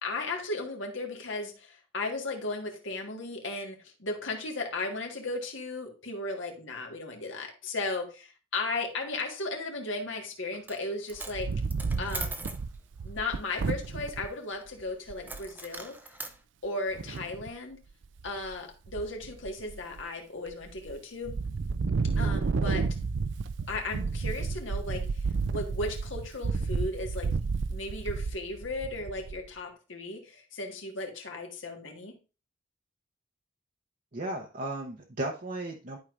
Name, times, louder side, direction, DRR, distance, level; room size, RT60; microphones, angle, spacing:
voice 1, 0.0-11.5 12.0-12.4 13.0-16.0 16.6-17.8 18.2-21.4 22.2-22.9 23.7-27.3 27.7-32.1, left 2 dB, 75° left, 2 dB, 1.7 m, -36 dB
Coin (dropping), 10.5-10.8 11.1-12.6 15.3-16.4, right 3 dB, 10° right, 0.5 m, -40 dB
Wind, 11.1-14.3 14.8-14.9 15.1-15.5 16.9-17.5 18.0-18.5 18.9-20.0 20.5-20.9 21.2-29.5, right 4 dB, 70° right, 0.4 m, -31 dB
voice 2, 34.1-36.0, right 1 dB, 45° right, 0 dB, 0.8 m, -35 dB
11.5 x 4.8 x 2.5 m, 0.32 s
head